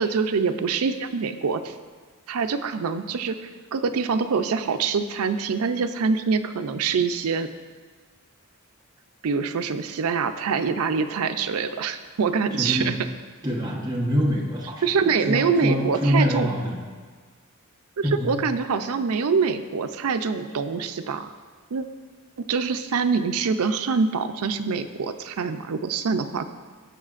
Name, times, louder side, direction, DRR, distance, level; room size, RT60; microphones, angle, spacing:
voice 1, 0.0-1.8 2.3-7.5 9.2-12.9 14.8-16.5 18.0-21.4 21.7-21.9 22.4-26.5, right 5 dB, 80° right, 9 dB, 0.5 m, -25 dB
voice 2, 12.5-12.9 13.4-16.8 18.0-18.3, equal, 20° right, -3 dB, 1.1 m, -25 dB
17.5 x 6.3 x 2.5 m, 1.5 s
head